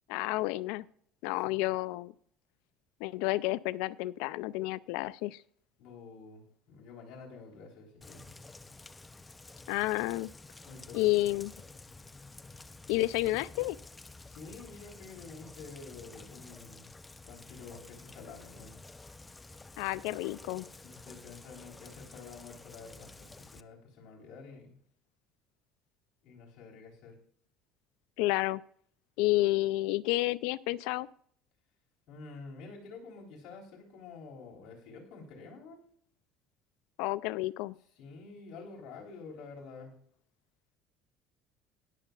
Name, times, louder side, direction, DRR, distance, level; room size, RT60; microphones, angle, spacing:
voice 1, 0.1-0.9 1.2-2.1 3.0-5.4 9.7-10.3 10.9-11.5 12.9-13.8 19.8-20.7 28.2-28.6 29.2-31.1 37.0-37.7, left 18 dB, 85° left, 19 dB, 0.3 m, -30 dB
voice 2, 5.8-8.2 10.6-11.4 14.3-16.9 17.3-18.7 20.8-24.8 26.2-27.1 32.1-35.8 38.0-39.9, left 4 dB, 60° left, -2 dB, 3.6 m, -49 dB
Rain, 8.0-23.6, left 3 dB, 10° left, 0.4 m, -51 dB
20.0 x 6.7 x 2.4 m, 0.62 s
cardioid pair, 150°, 0 cm